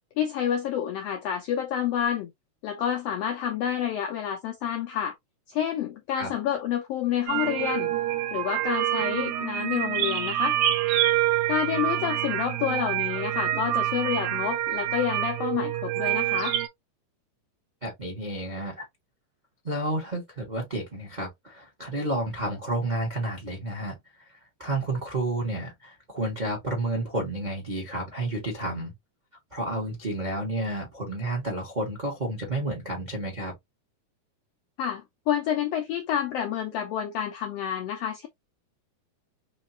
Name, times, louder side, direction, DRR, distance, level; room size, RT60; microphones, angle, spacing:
voice 1, 0.2-2.3 2.6-5.1 5.5-7.9 8.3-10.6 11.5-16.6 34.8-38.3, left 9 dB, 85° left, 1.4 m, -29 dB
sound 1, 7.3-16.7, right 13 dB, 90° right, 2.2 m, -27 dB
voice 2, 17.8-18.8 19.6-23.9 24.6-28.9 29.5-33.5, right 1 dB, 75° right, 0.4 m, -31 dB
5.0 x 2.4 x 2.7 m
omnidirectional pair, 3.5 m